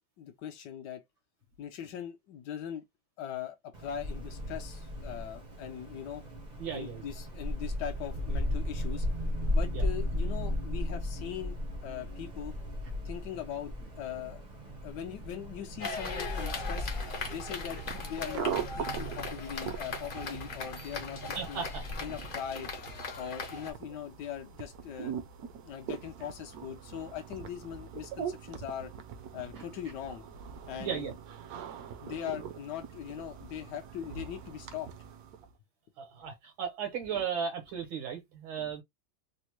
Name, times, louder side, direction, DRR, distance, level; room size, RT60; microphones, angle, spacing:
voice 1, 0.2-1.0 1.6-2.8 3.2-6.2 6.7-9.1 9.5-12.5 13.0-14.4 14.8-16.9 17.3-21.7 22.0-22.7 23.2-25.1 25.6-28.9 29.3-30.2 30.7-31.1 32.0-34.9, left 9 dB, 70° left, 1.1 m, -40 dB
Wind, 3.7-22.3, left 1 dB, 50° right, 0.5 m, -36 dB
voice 2, 6.6-7.0 9.7-9.9 21.3-21.8 29.5-29.7 30.8-31.1 36.0-38.8, right 7 dB, 85° right, 2.0 m, -36 dB
sound 1, 15.8-23.7, left 3 dB, 45° left, 0.6 m, -39 dB
sound 2, 16.2-35.5, right 8 dB, 70° right, 0.9 m, -42 dB
4.1 x 2.1 x 3.0 m
omnidirectional pair, 2.1 m